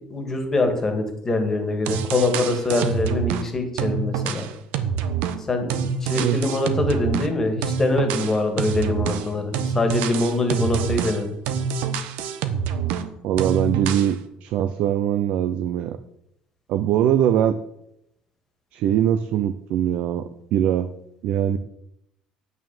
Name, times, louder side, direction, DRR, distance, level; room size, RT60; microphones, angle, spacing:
voice 1, 0.1-4.5 5.4-11.3, left 2 dB, 15° left, 5 dB, 1.9 m, -24 dB
sound 1, 1.6-1.7 1.9-3.5 3.8-7.3 7.6-13.1 13.4-14.1, right 7 dB, 80° right, 1.1 m, -26 dB
voice 2, 13.2-16.0 16.7-17.6 18.7-20.9 21.2-21.6, right 10 dB, 65° right, 10 dB, 0.6 m, -22 dB
9.2 x 6.3 x 7.1 m, 0.78 s
cardioid pair, 150°, 3 cm